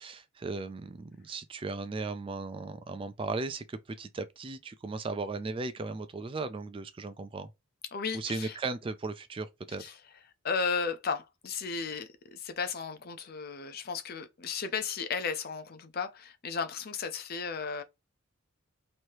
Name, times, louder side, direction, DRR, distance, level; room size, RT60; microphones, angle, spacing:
voice 1, 0.0-7.5 8.1-9.9, right 3 dB, 25° right, 0.3 m, -37 dB
voice 2, 7.9-8.6 9.8-9.9 10.4-17.8, left 5 dB, 45° left, 0.5 m, -34 dB
3.1 x 2.7 x 4.5 m
head